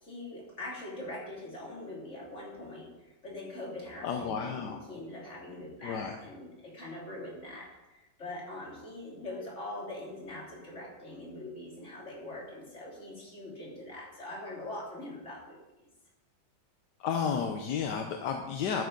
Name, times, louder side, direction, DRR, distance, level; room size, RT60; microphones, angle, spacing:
voice 1, 0.0-15.6, left 1 dB, 40° left, -3 dB, 3.3 m, -43 dB
voice 2, 4.0-4.8 5.8-6.2 17.0-18.8, left 6 dB, 75° left, 4 dB, 1.4 m, -32 dB
11.5 x 9.7 x 3.9 m, 1.0 s
omnidirectional pair, 1.9 m